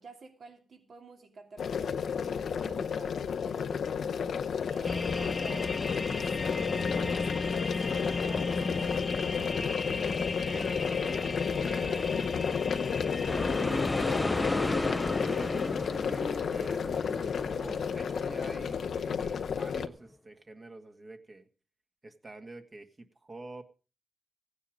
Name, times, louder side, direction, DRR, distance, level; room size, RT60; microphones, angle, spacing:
voice 1, 0.0-10.0, right 4 dB, 65° right, 4 dB, 2.8 m, -51 dB
sound 1, 1.6-19.9, left 7 dB, 75° left, 0.8 m, -32 dB
sound 2, 4.8-15.7, left 3 dB, 40° left, 0.9 m, -34 dB
voice 2, 6.9-7.2 10.4-21.5 22.0-23.6, right 2 dB, 40° right, 5 dB, 1.9 m, -47 dB
sound 3, 13.3-19.5, left 1 dB, 15° left, 0.6 m, -34 dB
16.0 x 9.7 x 5.0 m, 0.34 s
cardioid pair, 70°, 0 cm